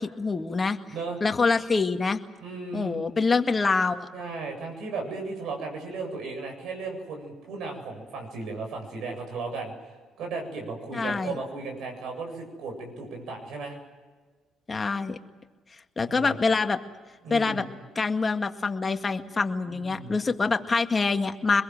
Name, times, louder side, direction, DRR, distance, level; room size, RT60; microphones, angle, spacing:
voice 1, 0.0-0.8 1.2-2.2 2.7-4.1 10.9-11.4 14.7-15.2 16.0-16.8 17.3-17.6 18.0-21.6, left 4 dB, 30° left, 7 dB, 2.0 m, -25 dB
voice 2, 2.4-3.0 4.1-9.7 10.2-13.8 16.1-16.4 17.2-17.7 19.7-20.2, right 3 dB, 65° right, 2 dB, 7.9 m, -35 dB
24.5 x 22.0 x 7.7 m, 1.4 s
hypercardioid pair, 65°, 0 cm